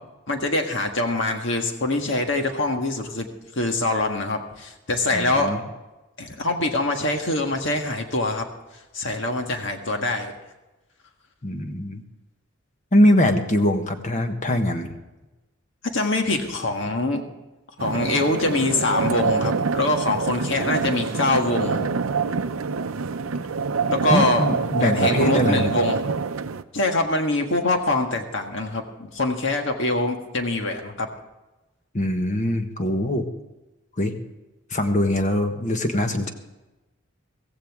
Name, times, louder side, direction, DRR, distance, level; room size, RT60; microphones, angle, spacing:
voice 1, 0.3-3.3 3.5-5.6 6.2-8.5 8.9-10.3 15.8-17.2 17.8-21.8 23.9-24.4 24.8-26.0 26.7-31.1, left 2 dB, 60° left, 4 dB, 1.7 m, -24 dB
voice 2, 5.1-5.6 11.4-12.0 12.9-14.9 24.1-25.7 31.9-33.3 34.0-34.1 34.7-36.3, left 1 dB, 35° left, 6 dB, 1.3 m, -22 dB
sound 1, 17.8-26.6, right 5 dB, 90° right, 0.6 m, -26 dB
15.5 x 15.5 x 3.6 m, 1.1 s
head